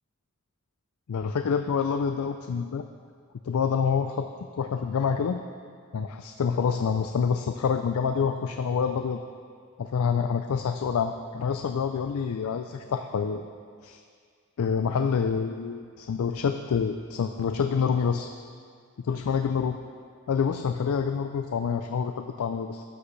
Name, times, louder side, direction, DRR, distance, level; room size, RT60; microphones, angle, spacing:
voice 1, 1.1-2.9 3.4-4.3 4.6-5.4 5.9-9.2 9.8-13.5 13.8-14.0 14.6-18.3 19.0-19.8 20.3-22.8, left 6 dB, 70° left, 7 dB, 0.4 m, -27 dB
13.0 x 8.3 x 3.2 m, 2.1 s
head